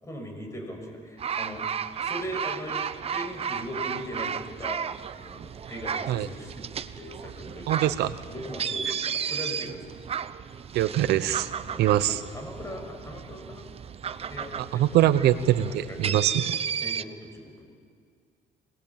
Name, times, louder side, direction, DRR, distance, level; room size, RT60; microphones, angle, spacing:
voice 1, 0.0-1.6 2.0-4.8 5.1-7.9 8.3-9.8 11.6-11.9 12.3-13.6 14.1-15.0 15.7-16.4 16.8-17.7, equal, 15° left, 2 dB, 6.2 m, -39 dB
sound 1, 1.2-17.0, right 7 dB, 35° right, 0.8 m, -34 dB
voice 2, 7.7-8.1 10.7-11.5 11.8-12.2 14.6-16.4, right 12 dB, 75° right, 13 dB, 0.9 m, -23 dB
25.5 x 19.5 x 8.7 m, 2.1 s
cardioid pair, 110°, 17 cm